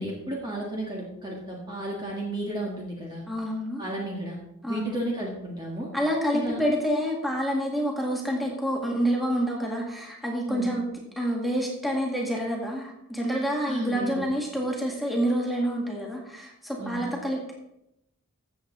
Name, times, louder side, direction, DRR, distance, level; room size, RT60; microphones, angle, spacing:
voice 1, 0.0-3.2 3.8-4.4 4.7-5.9 6.3-6.6 10.5-10.8 13.6-14.2 16.8-17.1, right 1 dB, 20° right, -3 dB, 1.7 m, -33 dB
voice 2, 3.3-3.8 4.6-5.0 5.9-10.8 11.2-17.5, equal, ahead, -2 dB, 2.1 m, -28 dB
14.5 x 8.0 x 4.0 m, 0.82 s
head